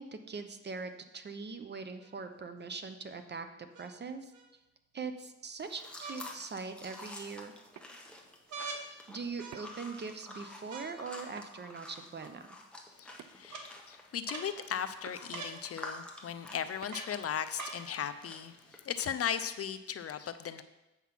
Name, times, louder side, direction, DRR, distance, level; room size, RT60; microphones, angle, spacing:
voice 1, 0.0-3.5 3.8-4.3 4.9-7.5 9.1-12.4, right 4 dB, 35° right, 8 dB, 0.8 m, -41 dB
sound 1, 2.0-2.1 3.7-4.4 6.0-6.2 6.8-7.4 8.5-8.8 9.4-9.9 10.7-11.2 12.2-12.3 13.5-13.7 14.3-14.5 15.3-15.6 16.9-17.2 17.6-17.8 18.7-18.8, right 4 dB, 80° right, 1.3 m, -44 dB
sound 2, 5.6-19.6, left 1 dB, 5° left, 1.2 m, -50 dB
sound 3, 7.7-7.9 9.5-9.9 11.4-11.7 13.2-13.6 15.1-15.2 16.8-17.1, right 9 dB, 65° right, 0.6 m, -52 dB
voice 2, 13.0-20.6, left 8 dB, 50° left, 11 dB, 0.6 m, -37 dB
8.2 x 5.8 x 5.9 m, 0.98 s
cardioid pair, 120°, 29 cm